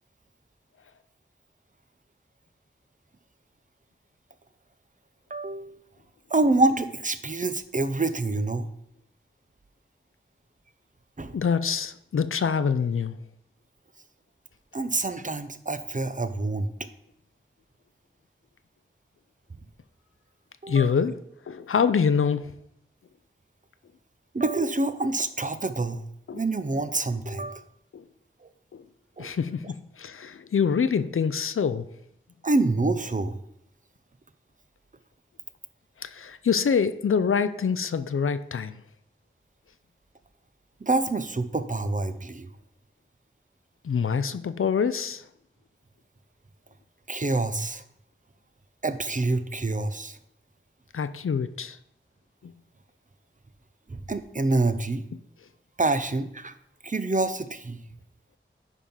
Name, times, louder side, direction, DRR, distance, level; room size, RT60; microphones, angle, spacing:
voice 1, 5.3-5.7 6.3-8.7 11.2-11.3 14.7-16.7 20.6-20.9 24.3-26.0 26.3-27.6 29.2-29.3 32.4-33.4 40.8-42.5 47.1-47.8 48.8-50.2 53.9-55.0 55.8-56.5 56.8-57.8, right 2 dB, 40° right, 11 dB, 0.7 m, -26 dB
voice 2, 11.3-13.2 20.7-21.2 21.5-22.5 26.3-26.4 27.9-28.1 28.7-28.8 29.2-31.9 36.0-38.8 43.8-45.2 50.9-51.8 52.4-52.5, left 6 dB, 90° left, 12 dB, 0.4 m, -25 dB
9.9 x 3.7 x 5.5 m, 0.76 s
wide cardioid pair, 50°, 21 cm